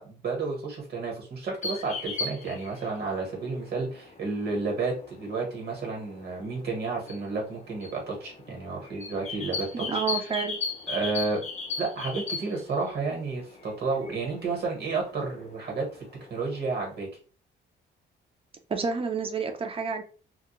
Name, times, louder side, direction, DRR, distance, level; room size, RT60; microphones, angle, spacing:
voice 1, 0.0-9.8 10.9-11.4 11.8-16.0 16.3-17.1, right 4 dB, 55° right, 0 dB, 1.2 m, -31 dB
sound 1, 1.6-17.0, left 4 dB, 35° left, 0.6 m, -39 dB
voice 2, 9.7-10.6 18.7-20.0, right 5 dB, 30° right, 6 dB, 0.5 m, -29 dB
2.3 x 2.1 x 3.0 m, 0.38 s
cardioid pair, 90°, 20 cm